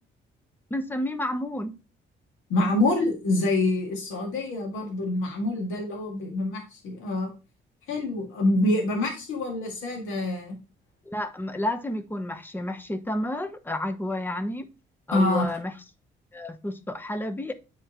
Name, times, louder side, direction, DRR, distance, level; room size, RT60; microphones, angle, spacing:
voice 1, 0.7-1.7 11.1-14.6 15.1-15.7 16.3-17.5, left 1 dB, 10° left, 8 dB, 0.9 m, -30 dB
voice 2, 2.5-7.3 7.9-10.6 15.1-15.4, left 2 dB, 90° left, 0 dB, 2.1 m, -26 dB
8.9 x 4.4 x 2.9 m, 0.31 s
cardioid pair, 90°, 20 cm